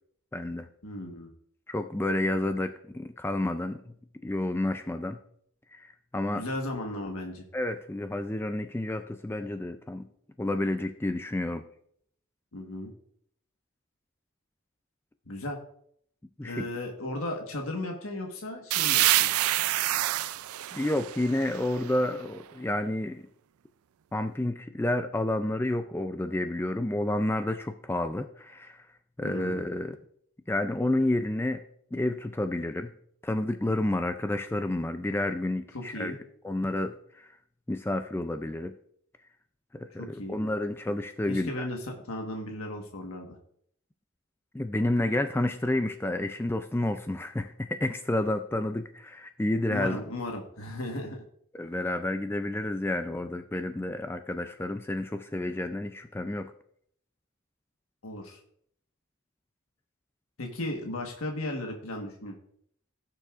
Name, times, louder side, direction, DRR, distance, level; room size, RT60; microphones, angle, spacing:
voice 1, 0.3-0.7 1.7-3.9 4.2-5.2 5.7-5.9 6.1-6.4 7.5-10.1 10.4-11.6 16.4-16.7 20.7-23.3 24.1-28.8 29.2-30.0 30.5-31.6 31.9-32.9 33.2-36.1 36.4-37.3 37.7-38.7 39.7-41.7 44.5-50.0 51.6-56.5, left 1 dB, 10° left, 8 dB, 0.3 m, -30 dB
voice 2, 0.8-1.3 6.3-7.4 12.5-12.9 15.3-15.6 16.4-19.3 29.2-29.6 35.7-36.2 40.0-40.4 41.3-43.4 49.7-51.2 58.0-58.4 60.4-62.4, left 1 dB, 80° left, 2 dB, 1.4 m, -36 dB
sound 1, 18.7-22.3, right 15 dB, 85° right, 0.4 m, -27 dB
16.5 x 6.8 x 2.5 m, 0.66 s
head